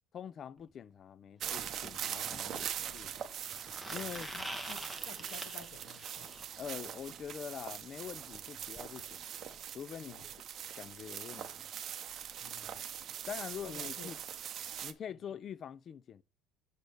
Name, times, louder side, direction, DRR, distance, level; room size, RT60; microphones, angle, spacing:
voice 1, 0.1-3.2 3.9-4.3 6.6-10.3 10.8-11.7 13.3-14.2 14.8-16.2, left 8 dB, 30° left, 0.3 m, -45 dB
sound 1, 0.6-0.7 2.6-6.4 8.3-8.4 8.7-8.8 9.1-9.2 10.2-10.3, right 1 dB, ahead, 0.8 m, -45 dB
sound 2, 1.4-14.9, right 9 dB, 35° right, 0.8 m, -42 dB
voice 2, 3.9-6.3 8.5-8.6 10.0-10.3 12.4-12.8 13.6-14.1 15.1-15.2, left 6 dB, 55° left, 1.8 m, -53 dB
6.6 x 6.1 x 3.3 m
cardioid pair, 150°, 0 cm